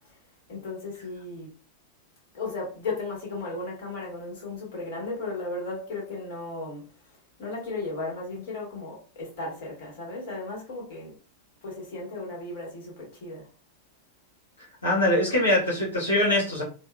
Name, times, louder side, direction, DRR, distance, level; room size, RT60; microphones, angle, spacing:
voice 1, 0.5-1.5 2.3-6.8 7.4-11.1 11.6-13.5, left 3 dB, 50° left, 1.6 m, -35 dB
voice 2, 14.8-16.6, left 1 dB, 75° left, 1.1 m, -23 dB
4.1 x 2.3 x 2.2 m
figure-of-eight pair, 90°, 0 cm